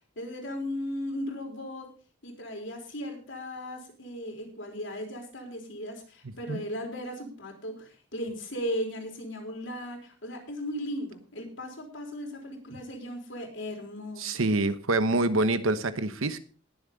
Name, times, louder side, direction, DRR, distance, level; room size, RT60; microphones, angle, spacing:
voice 1, 0.2-1.9 2.2-14.4, equal, 65° left, 2 dB, 3.7 m, -37 dB
voice 2, 14.2-16.4, right 2 dB, 85° right, 12 dB, 1.0 m, -26 dB
19.5 x 7.4 x 4.0 m, 0.41 s
head